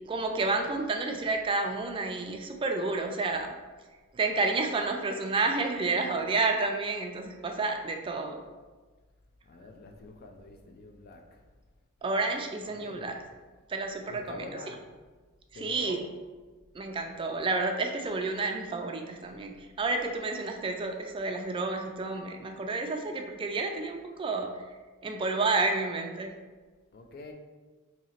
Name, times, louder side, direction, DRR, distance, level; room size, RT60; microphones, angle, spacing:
voice 1, 0.1-3.6 4.1-8.4 12.0-13.1 13.7-14.5 15.5-16.0 16.7-24.5 25.0-26.3, right 3 dB, 25° right, 3 dB, 0.3 m, -30 dB
voice 2, 9.4-11.5 12.6-13.1 14.1-14.9 15.5-16.1 26.9-27.3, left 2 dB, 45° left, 3 dB, 0.4 m, -46 dB
2.9 x 2.8 x 4.2 m, 1.3 s
head